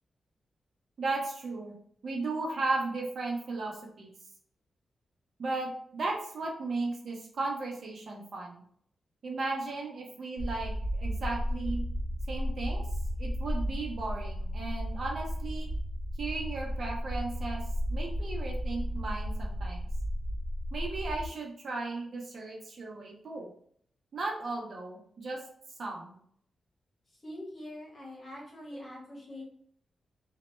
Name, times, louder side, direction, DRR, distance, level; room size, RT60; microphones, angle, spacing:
voice 1, 1.0-1.7 2.0-4.1 5.4-8.6 9.2-11.8 12.3-12.8 13.2-15.7 16.2-17.6 17.9-19.9 20.7-23.5 24.1-25.4 25.8-26.2, right 3 dB, 55° right, -1 dB, 0.6 m, -35 dB
sound 1, 10.4-21.3, equal, 70° right, 0.9 m, -34 dB
voice 2, 27.1-29.4, left 1 dB, 35° left, -3 dB, 0.9 m, -44 dB
2.1 x 2.0 x 2.9 m, 0.62 s
wide cardioid pair, 125°, 0 cm